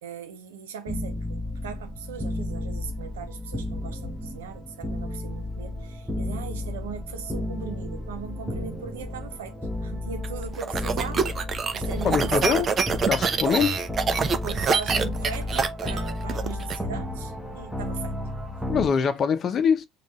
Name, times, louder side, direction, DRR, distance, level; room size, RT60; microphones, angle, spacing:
voice 1, 0.0-11.4 11.7-12.7 14.4-18.2, right 7 dB, 85° right, 0.8 m, -38 dB
sound 1, 0.9-18.9, left 1 dB, ahead, 1.1 m, -33 dB
sound 2, 10.2-16.8, right 5 dB, 40° right, 0.7 m, -26 dB
voice 2, 12.0-12.7 13.1-13.9 18.7-19.9, left 7 dB, 45° left, 0.8 m, -23 dB
5.2 x 2.5 x 3.1 m
hypercardioid pair, 70°, 0 cm